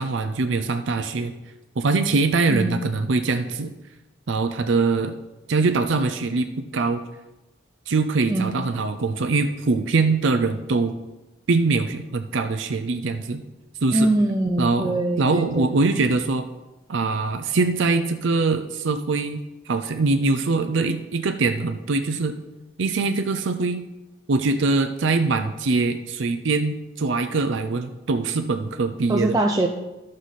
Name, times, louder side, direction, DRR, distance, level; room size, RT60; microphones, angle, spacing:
voice 1, 0.0-1.3 1.8-3.7 4.3-5.1 5.5-7.0 7.9-11.0 11.5-13.4 13.8-14.1 14.6-16.4 16.9-19.4 19.7-22.4 22.8-23.8 24.3-29.4, right 3 dB, 65° right, 7 dB, 0.5 m, -23 dB
voice 2, 2.5-2.8 8.3-8.6 13.9-15.7 29.1-29.7, right 1 dB, 15° right, 1 dB, 0.5 m, -22 dB
12.0 x 6.4 x 4.1 m, 1.0 s
head